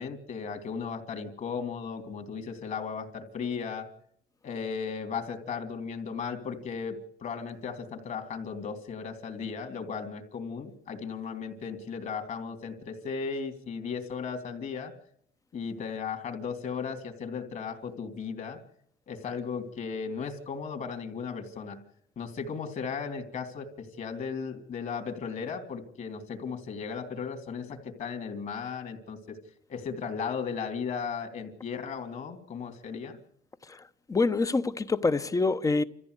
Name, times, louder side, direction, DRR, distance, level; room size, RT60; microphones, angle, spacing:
voice 1, 0.0-3.9 4.4-14.9 15.5-18.6 19.1-21.8 22.2-29.4 29.7-33.2, left 6 dB, 50° left, 3.3 m, -36 dB
voice 2, 34.1-35.8, left 3 dB, 20° left, 1.0 m, -26 dB
27.0 x 14.5 x 8.2 m
cardioid pair, 110°, 17 cm